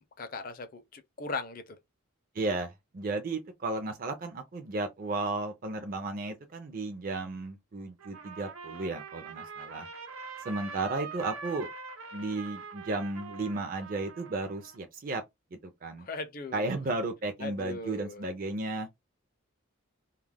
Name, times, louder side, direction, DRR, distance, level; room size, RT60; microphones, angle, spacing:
voice 1, 0.2-1.8 16.0-16.8 17.4-18.2, left 3 dB, 45° left, 0.5 m, -39 dB
voice 2, 2.3-9.9 10.4-11.7 12.1-15.2 15.5-16.1 16.5-18.9, right 2 dB, 40° right, 0.4 m, -34 dB
Trumpet, 8.0-14.8, right 5 dB, 90° right, 0.8 m, -44 dB
2.3 x 2.1 x 3.3 m
head